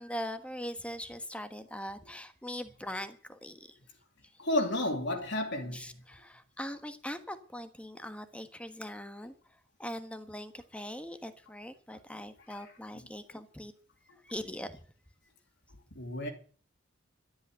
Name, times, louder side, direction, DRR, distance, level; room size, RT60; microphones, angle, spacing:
voice 1, 0.0-3.8 5.7-9.3 9.8-13.7 14.2-14.8, equal, 5° left, 1.3 m, -41 dB
voice 2, 4.4-5.8 15.9-16.3, left 1 dB, 65° left, 2.9 m, -31 dB
13.0 x 8.8 x 8.9 m
head